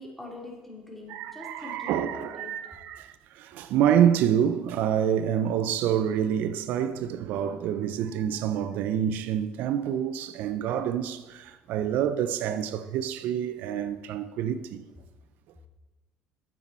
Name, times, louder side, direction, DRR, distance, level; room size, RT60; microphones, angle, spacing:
voice 1, 0.0-2.5, left 1 dB, 5° left, 2.7 m, -43 dB
voice 2, 1.1-14.8, right 9 dB, 70° right, 0.5 m, -27 dB
9.1 x 7.3 x 4.3 m
supercardioid pair, 85°, 3 cm